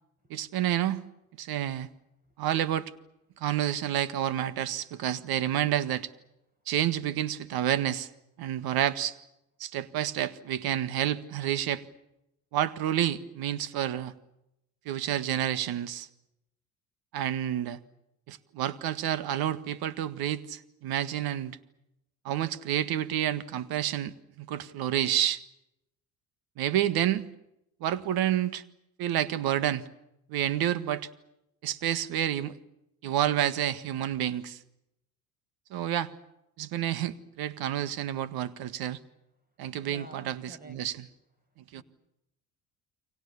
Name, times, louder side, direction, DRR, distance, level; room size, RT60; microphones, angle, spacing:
voice 1, 0.3-1.0 1.4-1.9 2.4-2.9 3.4-6.1 6.7-8.1 8.4-9.2 9.6-11.8 12.5-14.1 14.9-16.1 17.1-17.8 18.3-21.6 22.3-25.4 26.6-27.3 27.8-28.6 29.0-29.8 30.3-31.1 31.6-32.6 33.0-34.6 35.7-36.1 36.6-39.0 39.6-41.1 41.7-41.8, right 11 dB, 70° right, 15 dB, 1.8 m, -29 dB
voice 2, 39.7-40.8 41.8-41.9, right 1 dB, 25° right, 9 dB, 5.9 m, -49 dB
29.5 x 24.0 x 7.1 m, 0.85 s
supercardioid pair, 75°, 38 cm